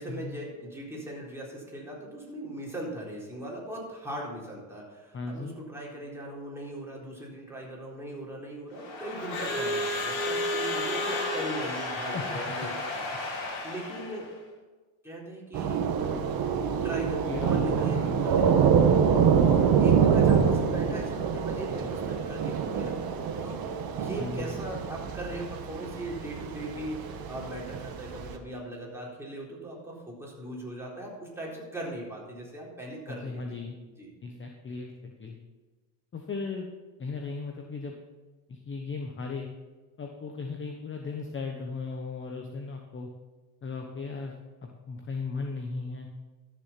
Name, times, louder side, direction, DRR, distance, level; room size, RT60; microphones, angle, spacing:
voice 1, 0.0-13.1 13.6-14.3 15.0-15.9 16.8-19.1 19.4-23.0 23.4-23.6 23.9-33.6 34.0-34.1, right 1 dB, 5° right, -4 dB, 4.1 m, -39 dB
voice 2, 5.1-5.5 12.1-12.4 17.3-18.2 19.5-20.1 24.2-24.6 33.1-33.8 34.2-35.4 36.1-36.7 37.0-37.9 38.5-39.5 40.0-43.1 43.6-44.3 44.6-46.1, left 4 dB, 25° left, 2 dB, 1.1 m, -36 dB
Crowd / Alarm, 8.8-14.3, left 2 dB, 65° left, 3.3 m, -32 dB
Thunder / Rain, 15.5-28.4, right 7 dB, 45° right, 1.5 m, -26 dB
13.5 x 6.9 x 5.8 m, 1.3 s
supercardioid pair, 110°, 49 cm